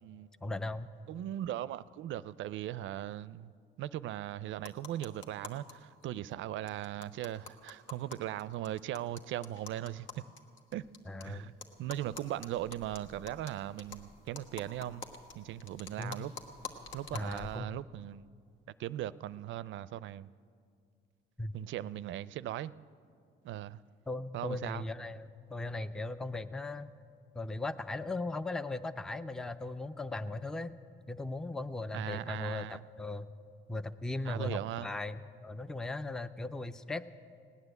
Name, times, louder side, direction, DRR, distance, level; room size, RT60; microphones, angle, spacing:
voice 1, 0.4-0.9 11.1-11.5 16.0-16.2 17.1-17.7 21.4-21.5 24.1-26.9 27.3-30.7 31.1-33.3 33.7-37.0, left 2 dB, 5° left, 0.4 m, -38 dB
voice 2, 1.1-3.5 3.8-10.2 10.7-10.9 11.2-15.1 15.3-16.3 16.9-18.3 18.8-20.3 21.5-22.7 23.4-23.8 24.3-24.8 31.9-32.8 34.2-34.9, right 13 dB, 75° right, 0.4 m, -39 dB
sound 1, 4.6-5.7 6.0-6.1 6.3-6.4 6.7-11.2 11.6-17.6, left 4 dB, 75° left, 1.4 m, -48 dB
18.0 x 9.7 x 8.0 m
cardioid pair, 90°, 20 cm